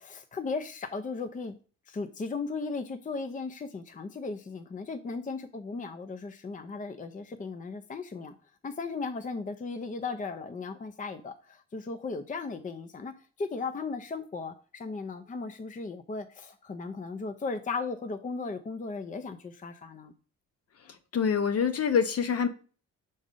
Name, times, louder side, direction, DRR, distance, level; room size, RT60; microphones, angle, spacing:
voice 1, 0.0-1.6 1.9-8.3 8.6-13.1 13.4-20.1, left 4 dB, 25° left, 0.6 m, -36 dB
voice 2, 21.1-22.5, left 6 dB, 50° left, 0.9 m, -25 dB
5.3 x 3.9 x 5.1 m
cardioid pair, 90°, 30 cm